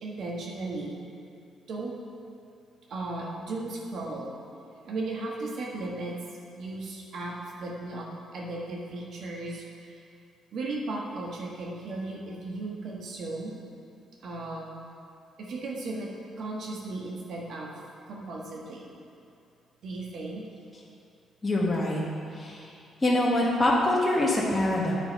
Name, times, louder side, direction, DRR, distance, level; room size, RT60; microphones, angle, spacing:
voice 1, 0.0-1.0 1.7-1.9 2.9-4.3 4.8-6.2 6.6-8.1 8.3-10.0 10.5-13.6 14.2-14.7 15.4-16.1 16.4-17.7 18.1-18.9 19.8-20.4, right 2 dB, 65° right, -2 dB, 1.4 m, -36 dB
voice 2, 21.4-22.0 22.3-22.7 23.0-24.9, left 1 dB, 20° left, -5 dB, 1.3 m, -24 dB
9.5 x 3.9 x 5.3 m, 2.5 s
cardioid pair, 90°, 0 cm